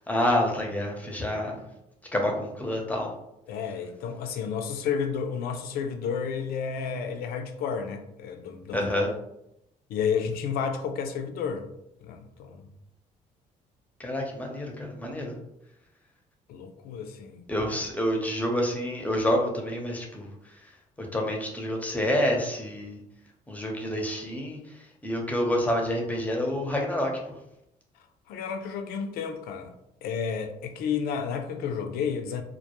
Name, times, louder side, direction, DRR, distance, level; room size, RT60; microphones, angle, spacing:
voice 1, 0.1-1.6 2.1-3.1 8.7-9.1 14.0-15.3 17.5-20.3 21.0-23.0 23.5-24.6 25.0-27.1, left 1 dB, 10° left, 0 dB, 0.7 m, -28 dB
voice 2, 3.5-8.9 9.9-11.6 12.0-12.6 16.5-17.4 28.3-29.7 30.0-32.4, left 6 dB, 75° left, 6 dB, 0.4 m, -31 dB
2.1 x 2.1 x 2.9 m, 0.81 s
cardioid pair, 85°, 16 cm